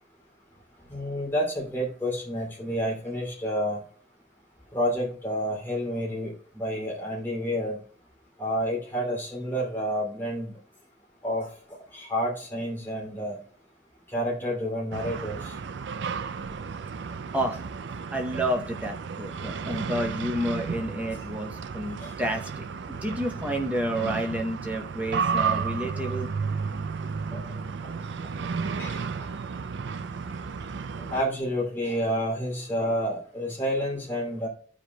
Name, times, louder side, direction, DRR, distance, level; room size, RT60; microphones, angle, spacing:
voice 1, 0.9-3.8 4.7-7.8 8.4-10.5 11.2-11.5 11.9-13.4 14.1-15.5 22.0-22.1 27.3-27.4 28.8-29.0 31.0-34.5, equal, 10° left, -3 dB, 2.6 m, -29 dB
sound 1, 14.9-31.2, right 5 dB, 70° right, 0.4 m, -33 dB
voice 2, 18.1-26.3, equal, 10° right, 3 dB, 0.9 m, -30 dB
14.5 x 5.1 x 2.2 m, 0.43 s
head